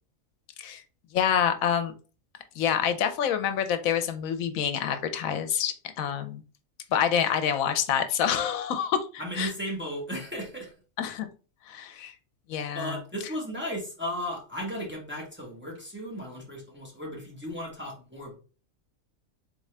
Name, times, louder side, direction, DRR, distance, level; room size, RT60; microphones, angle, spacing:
voice 1, 1.1-1.9 2.6-6.4 6.9-9.5 11.0-11.3 11.7-12.1 12.5-13.0, left 8 dB, 85° left, 9 dB, 1.0 m, -27 dB
voice 2, 9.2-10.7 12.7-18.3, equal, 10° right, -2 dB, 1.1 m, -35 dB
3.8 x 3.7 x 3.2 m, 0.36 s
omnidirectional pair, 1.4 m